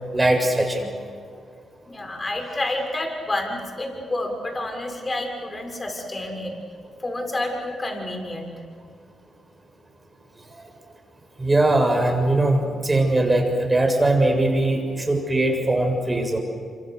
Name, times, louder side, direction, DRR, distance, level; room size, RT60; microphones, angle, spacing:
voice 1, 0.1-0.9 11.4-16.4, right 2 dB, 25° right, 3 dB, 6.8 m, -20 dB
voice 2, 1.9-6.5 7.0-8.5, left 1 dB, 30° left, 3 dB, 6.8 m, -29 dB
26.5 x 26.0 x 6.8 m, 2.2 s
supercardioid pair, 60°, 0 cm